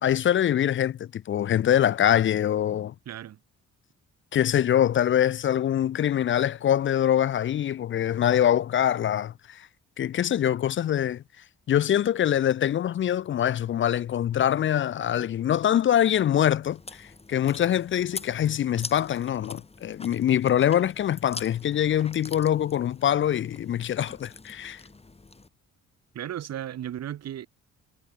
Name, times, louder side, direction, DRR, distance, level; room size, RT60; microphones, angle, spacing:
voice 1, 0.0-2.9 4.3-9.7 10.0-11.2 11.7-24.8, left 10 dB, 40° left, 0.4 m, -24 dB
voice 2, 3.1-3.4 26.1-27.5, right 11 dB, 60° right, 1.3 m, -35 dB
Chewing mastication, 16.6-25.5, left 3 dB, 20° left, 3.8 m, -44 dB
cardioid pair, 90°, 30 cm